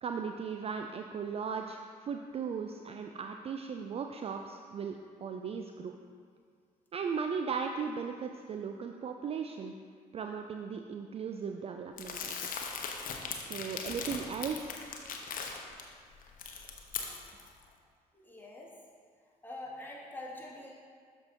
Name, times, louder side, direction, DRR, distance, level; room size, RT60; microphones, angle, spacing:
voice 1, 0.0-6.0 6.9-9.7 10.1-12.6 13.2-14.8, right 6 dB, 30° right, 5 dB, 0.4 m, -37 dB
Crumpling crinkling, 12.0-15.8 16.2-17.5, left 5 dB, 45° left, 0.8 m, -39 dB
voice 2, 18.2-18.7 19.4-20.7, left 1 dB, 10° left, -4 dB, 1.8 m, -44 dB
12.5 x 4.6 x 2.6 m, 2.1 s
figure-of-eight pair, 45°, 20 cm